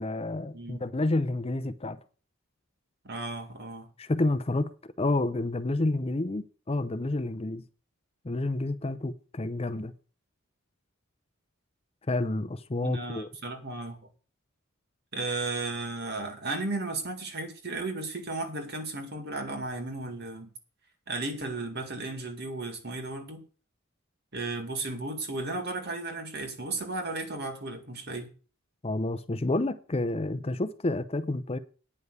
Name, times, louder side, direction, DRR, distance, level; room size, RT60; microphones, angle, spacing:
voice 1, 0.0-2.0 4.0-4.7 5.0-7.6 8.2-9.9 12.1-13.3 28.8-31.6, left 2 dB, 30° left, 0.6 m, -29 dB
voice 2, 0.5-0.8 3.0-3.9 12.8-14.1 15.1-20.5 21.1-23.4 24.3-28.3, right 2 dB, 50° right, 2.0 m, -34 dB
9.6 x 5.4 x 8.1 m
head